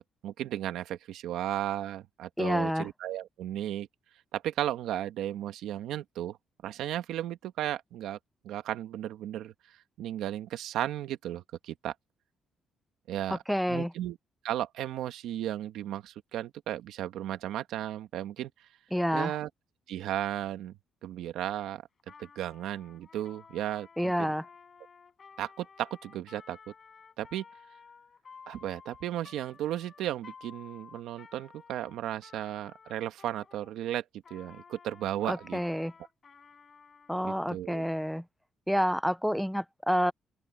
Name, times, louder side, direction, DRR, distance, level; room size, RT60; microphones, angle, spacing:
voice 1, 0.0-3.9 4.3-6.4 6.6-8.2 8.4-11.9 13.1-13.4 13.7-14.2 14.4-18.5 19.1-19.5 19.9-20.7 21.0-21.8 22.2-24.3 25.4-26.7 27.2-27.4 28.5-34.0 34.3-35.6 37.2-37.9, right 12 dB, 85° right, 1.7 m, -35 dB
voice 2, 2.4-2.9 13.3-13.9 18.9-19.3 24.0-24.4 35.3-35.9 37.1-38.2 38.7-40.1, equal, ahead, 0.6 m, -28 dB
Trumpet, 22.0-33.8 34.2-37.2, left 5 dB, 40° left, 6.8 m, -54 dB
open air
cardioid pair, 90°, 0 cm